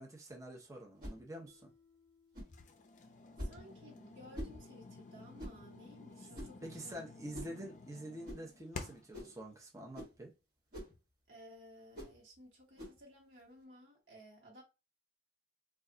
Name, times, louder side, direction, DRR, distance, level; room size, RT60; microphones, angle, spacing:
voice 1, 0.0-1.7 6.6-10.3, right 1 dB, 20° right, 0.7 m, -47 dB
sound 1, 1.0-1.2 2.3-2.6 3.4-3.6 4.3-4.6 5.4-5.6 6.3-6.6 7.3-7.6 8.2-8.4 9.1-9.4 9.9-10.2 10.7-11.0 11.9-12.2 12.8-13.0, equal, 55° right, 1.4 m, -45 dB
Mallet percussion, 1.5-4.7, left 3 dB, 40° right, 1.0 m, -71 dB
sound 2, 2.5-9.2, left 3 dB, 45° left, 0.4 m, -52 dB
voice 2, 3.4-7.1 11.3-14.6, equal, 80° right, 1.0 m, -57 dB
2.3 x 2.2 x 3.7 m
head